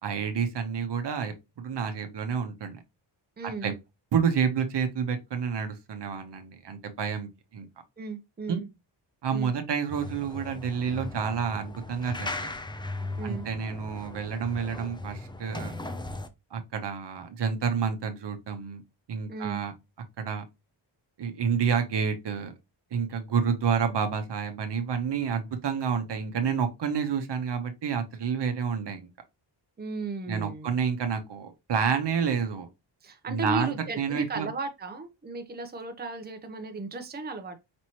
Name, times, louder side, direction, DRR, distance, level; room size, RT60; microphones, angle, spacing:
voice 1, 0.0-2.8 3.4-3.7 4.1-7.7 8.5-8.6 9.2-12.5 13.2-15.7 16.5-18.8 19.1-19.7 20.2-20.4 21.2-22.5 22.9-29.1 30.3-32.7 33.3-34.5, right 6 dB, 60° right, 0.9 m, -29 dB
voice 2, 3.4-3.8 8.0-8.7 9.3-9.5 13.2-13.5 19.3-19.6 29.8-30.7 33.0-37.6, right 3 dB, 20° right, 0.8 m, -35 dB
sound 1, 9.9-16.3, left 2 dB, 10° left, 0.5 m, -38 dB
5.3 x 2.9 x 2.9 m
cardioid pair, 90°, 47 cm